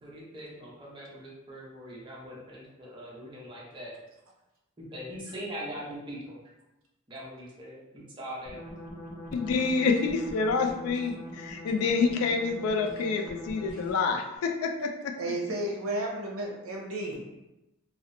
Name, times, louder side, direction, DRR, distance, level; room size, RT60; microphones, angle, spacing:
voice 1, 0.0-3.9 4.8-6.4 7.1-8.6, equal, 25° right, -5 dB, 0.6 m, -41 dB
Alien wahwah, 8.5-14.2, equal, 40° left, 0.6 m, -43 dB
voice 2, 9.3-15.1, left 4 dB, 85° left, 3 dB, 0.3 m, -27 dB
voice 3, 15.2-17.4, right 1 dB, 75° right, -1 dB, 0.6 m, -33 dB
2.8 x 2.0 x 2.5 m, 0.96 s
head